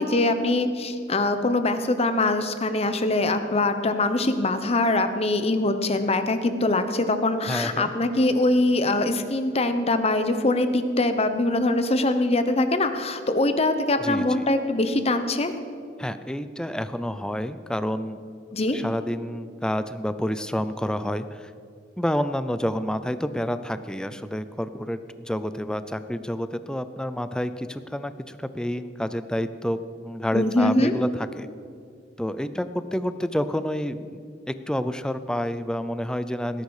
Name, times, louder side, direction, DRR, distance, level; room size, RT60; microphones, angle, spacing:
voice 1, 0.0-15.5 18.5-18.8 30.3-30.9, left 2 dB, 35° left, 9 dB, 0.9 m, -23 dB
voice 2, 7.5-7.9 14.0-14.5 16.0-18.2 18.7-21.5 22.0-31.5 32.2-34.2 34.5-36.6, equal, 5° left, 12 dB, 0.5 m, -29 dB
18.5 x 10.5 x 4.9 m, 2.3 s
head